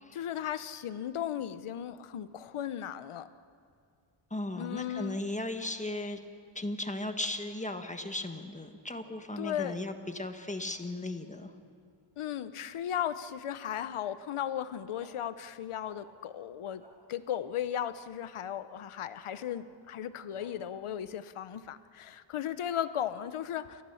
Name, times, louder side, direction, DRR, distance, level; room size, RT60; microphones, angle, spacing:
voice 1, 0.1-3.3 4.6-5.2 9.4-9.8 12.2-16.8 17.1-23.8, left 10 dB, 80° left, 13 dB, 1.0 m, -36 dB
voice 2, 4.3-6.2 6.5-11.5, left 1 dB, 15° left, 6 dB, 1.4 m, -36 dB
sound 1, 15.0-15.1 15.8-16.0 16.8-16.9 17.7-17.9 19.3-19.4 20.4-20.5, equal, 15° right, 6.7 m, -56 dB
30.0 x 14.5 x 7.1 m, 2.3 s
wide cardioid pair, 105°, 50 cm